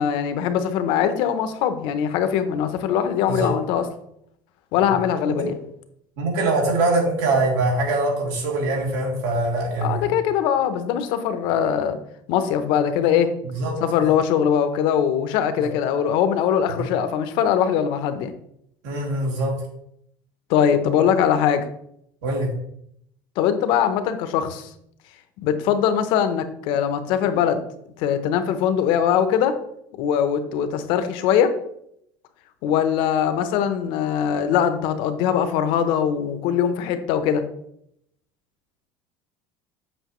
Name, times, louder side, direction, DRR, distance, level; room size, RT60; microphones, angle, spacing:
voice 1, 0.0-3.8 4.7-5.5 9.8-12.0 12.3-13.3 13.8-18.3 20.5-21.7 23.4-24.7 25.4-27.6 28.0-29.6 30.0-31.6 32.6-37.4, left 8 dB, 55° left, 9 dB, 0.7 m, -21 dB
voice 2, 6.2-10.1 13.5-13.8 14.0-14.2 15.6-15.7 16.7-16.9 18.8-19.5 22.2-22.5, right 2 dB, 85° right, -2 dB, 3.0 m, -23 dB
8.0 x 6.0 x 3.1 m, 0.72 s
cardioid pair, 180°, 10 cm